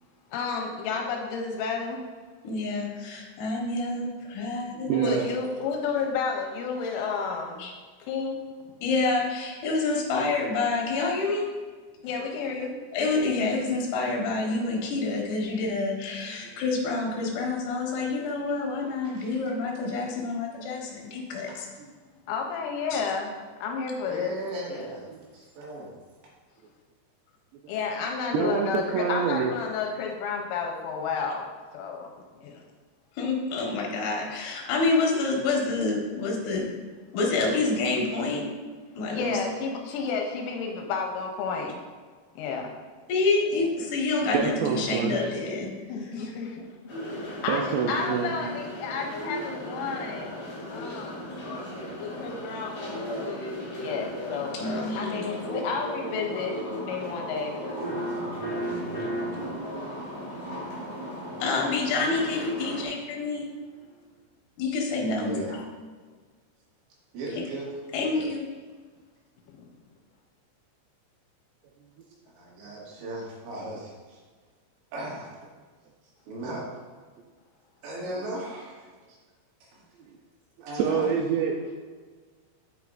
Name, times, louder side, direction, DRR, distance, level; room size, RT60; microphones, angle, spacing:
voice 1, 0.3-2.0 4.9-7.7 8.1-8.4 12.0-12.7 22.3-23.3 23.6-24.3 24.7-24.9 27.7-31.5 31.7-32.1 32.4-32.6 39.1-41.8 42.4-42.7 43.6-43.7 45.9-46.7 47.3-50.3 50.7-51.3 52.0-53.4 53.8-57.6 81.6-81.7, left 5 dB, 85° left, 3.2 m, -31 dB
voice 2, 2.4-5.3 7.6-7.7 8.8-11.5 12.9-21.7 22.9-23.0 33.1-36.7 37.1-38.4 38.9-39.4 43.1-45.7 46.0-46.3 54.5-55.3 61.4-63.5 64.6-65.6 67.4-67.5 67.9-68.4, left 3 dB, 65° left, 3.1 m, -28 dB
voice 3, 4.8-5.3 16.5-16.6 28.3-29.5 35.1-35.2 44.3-45.2 47.5-48.4 80.7-81.8, right 6 dB, 85° right, 2.4 m, -26 dB
voice 4, 24.1-26.0 65.1-65.6 67.1-67.7 68.0-68.3 72.3-74.2 74.9-75.4 76.3-76.6 77.8-79.2 79.6-79.8 80.6-81.1, right 1 dB, 70° right, 4.1 m, -37 dB
sound 1, 46.9-62.9, equal, 30° left, 1.9 m, -36 dB
voice 5, 57.8-59.5 60.0-60.2 60.5-60.7 61.0-61.3, right 1 dB, 45° right, 1.5 m, -34 dB
9.1 x 8.2 x 2.6 m
omnidirectional pair, 5.6 m